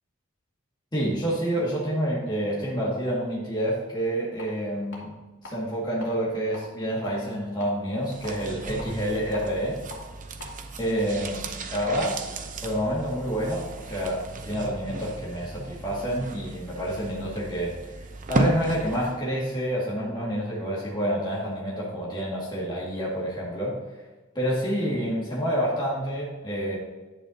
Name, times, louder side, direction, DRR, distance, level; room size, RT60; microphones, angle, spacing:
voice 1, 0.9-5.1 5.4-9.8 10.8-12.2 12.6-17.7 18.3-23.8 24.4-26.8, equal, 20° left, -7 dB, 2.0 m, -28 dB
sound 1, 4.4-4.5 4.9-5.5 5.9-6.1 6.5-7.7 8.2-10.0 10.4-10.5, left 3 dB, 60° left, 2.8 m, -43 dB
sound 2, 8.0-19.3 19.5-19.6, right 2 dB, 40° right, 0.7 m, -34 dB
11.0 x 9.0 x 2.8 m, 1.2 s
head